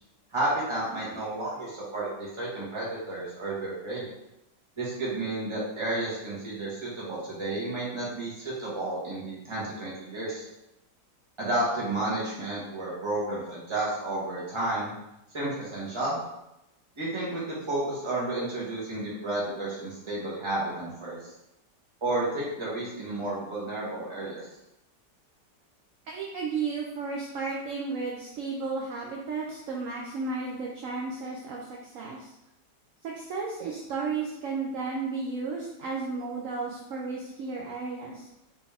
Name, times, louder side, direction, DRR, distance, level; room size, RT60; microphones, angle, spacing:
voice 1, 0.3-4.0 4.8-10.5 11.4-14.9 15.3-16.2 17.0-21.3 22.0-24.4, right 2 dB, 20° right, -7 dB, 1.3 m, -31 dB
voice 2, 26.1-32.3 33.0-38.3, right 4 dB, 70° right, -1 dB, 0.8 m, -33 dB
4.0 x 3.6 x 3.5 m, 0.89 s
omnidirectional pair, 1.9 m